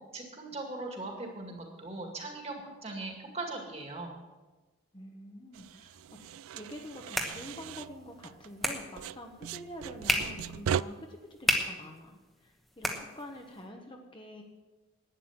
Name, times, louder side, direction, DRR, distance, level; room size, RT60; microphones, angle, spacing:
voice 1, 0.1-4.1, right 2 dB, 30° right, 2 dB, 2.1 m, -39 dB
voice 2, 4.9-6.0 6.5-12.2 12.4-14.4, left 1 dB, 25° left, 2 dB, 1.1 m, -46 dB
sound 1, 5.5-8.7 9.0-10.8, right 8 dB, 90° right, 0.3 m, -38 dB
sound 2, 6.6-13.6, equal, ahead, 1.1 m, -36 dB
11.5 x 9.4 x 7.3 m, 1.2 s
head